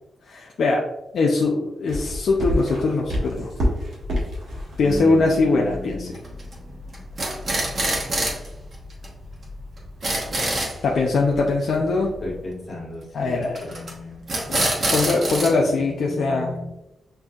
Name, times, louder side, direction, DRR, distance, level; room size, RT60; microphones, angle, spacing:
voice 1, 0.3-0.8 1.1-3.5 4.8-6.1 10.8-12.1 13.1-13.6 14.5-16.5, left 3 dB, 65° left, -1 dB, 0.5 m, -21 dB
sound 1, 1.9-12.5, equal, 75° right, 1.5 m, -32 dB
voice 2, 4.8-6.2 12.2-14.3 15.3-16.7, left 1 dB, 30° left, -4 dB, 1.3 m, -35 dB
sound 2, 6.1-6.5 6.9-8.5 8.7-8.8 9.0-9.1 9.4-9.5 9.8-10.7 13.5-13.9 14.3-15.5, right 1 dB, 45° right, 1.1 m, -25 dB
6.5 x 2.6 x 2.4 m, 0.94 s
wide cardioid pair, 120°, 0 cm